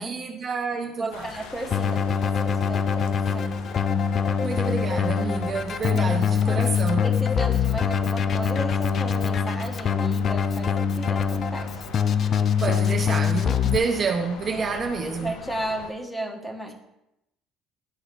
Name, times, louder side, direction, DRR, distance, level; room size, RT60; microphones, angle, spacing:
voice 1, 0.0-1.3 4.4-7.1 12.6-15.3, right 5 dB, 40° right, 3 dB, 0.7 m, -28 dB
voice 2, 1.0-3.6 5.9-11.7 14.5-16.7, right 1 dB, 5° left, 3 dB, 1.1 m, -35 dB
sound 1, 1.1-15.9, left 5 dB, 80° left, 0.7 m, -41 dB
Keyboard (musical), 1.7-13.8, left 7 dB, 45° left, 0.3 m, -24 dB
11.0 x 4.1 x 2.4 m, 0.86 s
supercardioid pair, 90°, 0 cm